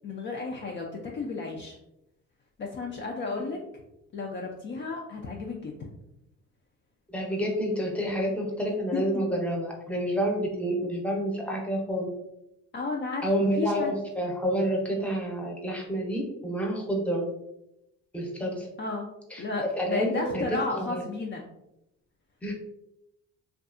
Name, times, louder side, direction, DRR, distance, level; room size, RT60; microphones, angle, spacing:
voice 1, 0.0-1.7 2.6-3.6 4.1-5.9 8.9-9.2 12.7-13.9 18.8-19.1 19.4-21.4, left 3 dB, 40° left, 0 dB, 0.4 m, -33 dB
voice 2, 7.1-12.1 13.2-17.3 18.1-18.7 19.3-21.0 22.4-22.5, equal, 5° left, -1 dB, 0.7 m, -29 dB
2.6 x 2.3 x 2.4 m, 0.86 s
cardioid pair, 90°, 30 cm